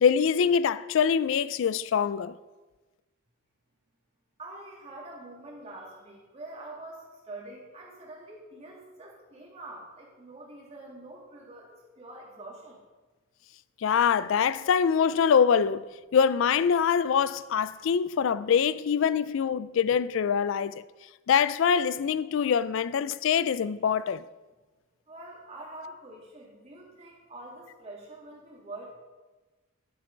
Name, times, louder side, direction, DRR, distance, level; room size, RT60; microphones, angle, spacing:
voice 1, 0.0-2.3 13.8-15.8 16.1-20.8 21.3-24.2, left 7 dB, 60° left, 0.3 m, -24 dB
voice 2, 4.4-12.8 25.1-28.9, right 2 dB, 30° right, 2.3 m, -45 dB
10.5 x 6.3 x 5.1 m
head